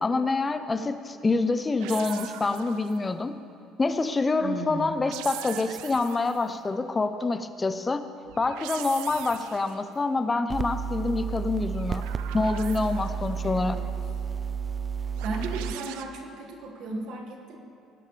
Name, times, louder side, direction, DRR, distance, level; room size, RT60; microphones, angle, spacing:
voice 1, 0.0-3.3 3.8-8.0 8.4-12.0 12.3-13.8, left 3 dB, 25° left, 10 dB, 0.7 m, -26 dB
sound 1, 1.8-3.1 4.8-6.5 8.3-9.9 11.7-13.3 15.2-16.0, right 12 dB, 85° right, 0.5 m, -41 dB
voice 2, 4.4-5.1 13.4-13.8 15.2-17.6, right 3 dB, 65° right, 1 dB, 1.9 m, -35 dB
sound 2, 10.5-15.7, right 6 dB, 30° right, 0.4 m, -32 dB
19.5 x 11.0 x 3.4 m, 2.7 s
supercardioid pair, 90°, 0 cm